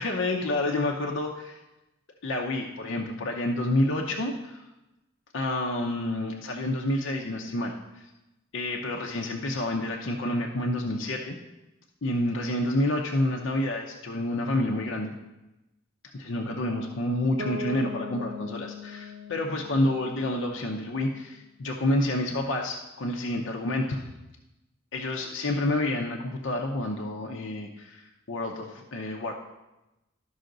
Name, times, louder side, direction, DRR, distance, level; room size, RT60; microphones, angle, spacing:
voice 1, 0.0-1.6 2.2-4.6 5.3-8.0 8.5-11.4 12.0-15.1 16.1-24.0 24.9-29.3, left 1 dB, 70° left, 1 dB, 0.7 m, -29 dB
Bass guitar, 17.4-21.2, left 3 dB, 85° right, 0.9 m, -40 dB
12.5 x 5.7 x 3.9 m, 0.98 s
head